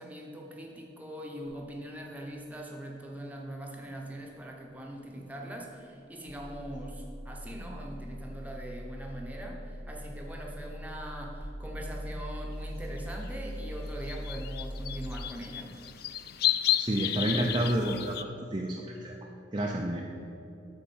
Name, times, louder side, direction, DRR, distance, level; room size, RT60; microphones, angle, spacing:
voice 1, 0.0-15.7, right 1 dB, 10° right, -1 dB, 0.9 m, -42 dB
sound 1, 1.4-15.3, equal, 10° left, 1.2 m, -42 dB
sound 2, 13.3-13.4 14.1-18.2, left 12 dB, 55° left, 0.3 m, -32 dB
voice 2, 16.8-19.1 19.5-20.0, right 1 dB, 25° right, -1 dB, 0.5 m, -30 dB
8.4 x 4.4 x 7.2 m, 2.8 s
head